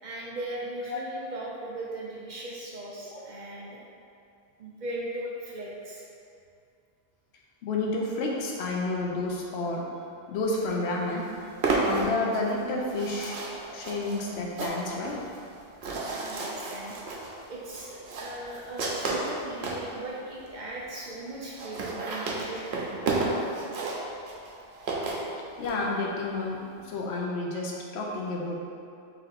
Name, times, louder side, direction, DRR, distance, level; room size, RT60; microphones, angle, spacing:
voice 1, 0.0-3.8 4.6-6.0 16.1-17.0 17.5-23.1 23.8-24.0, right 1 dB, 55° right, -5 dB, 0.5 m, -38 dB
voice 2, 3.0-3.6 7.6-9.9 10.3-11.3 11.7-13.4 13.7-15.2 25.6-28.6, left 2 dB, 80° left, -1 dB, 0.8 m, -30 dB
sound 1, 10.7-10.8 11.0-19.9 20.5-20.6 20.8-20.9 21.1-21.2 21.4-25.8, right 3 dB, 85° right, 0.9 m, -32 dB
3.2 x 2.6 x 4.0 m, 2.5 s
omnidirectional pair, 1.1 m